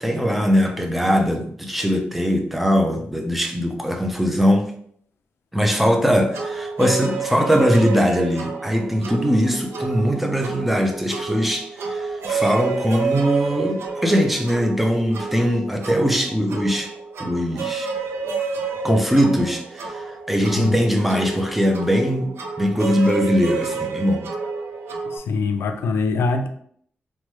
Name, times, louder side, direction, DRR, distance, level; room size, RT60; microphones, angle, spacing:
voice 1, 0.0-4.7 5.5-16.9 17.2-17.9 18.8-22.3 22.6-24.2, equal, 5° right, 3 dB, 0.4 m, -21 dB
sound 1, 6.3-25.2, right 4 dB, 85° right, 0.4 m, -30 dB
voice 2, 25.0-26.5, left 4 dB, 85° left, 6 dB, 0.4 m, -23 dB
3.0 x 2.2 x 3.0 m, 0.64 s
wide cardioid pair, 125°, 4 cm